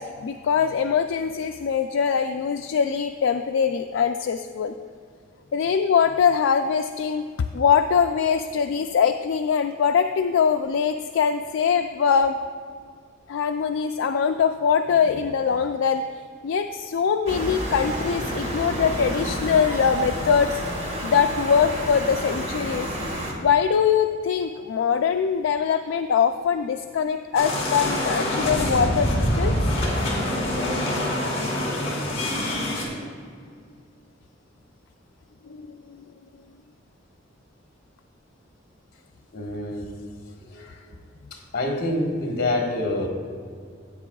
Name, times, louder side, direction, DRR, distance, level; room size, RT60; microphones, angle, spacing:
voice 1, 0.0-4.7 5.5-7.2 7.5-12.4 13.3-16.0 16.4-20.6 21.0-22.9 23.4-29.5 35.5-36.0, left 7 dB, 75° left, 6 dB, 0.3 m, -22 dB
sound 1, 17.3-23.3, equal, 35° right, 1.6 m, -30 dB
sound 2, 27.3-32.8, left 1 dB, 35° left, 2.6 m, -25 dB
voice 2, 39.3-39.9 40.4-41.0 41.3-43.1, left 1 dB, 55° left, 1 dB, 1.4 m, -27 dB
14.5 x 8.6 x 2.3 m, 2.1 s
head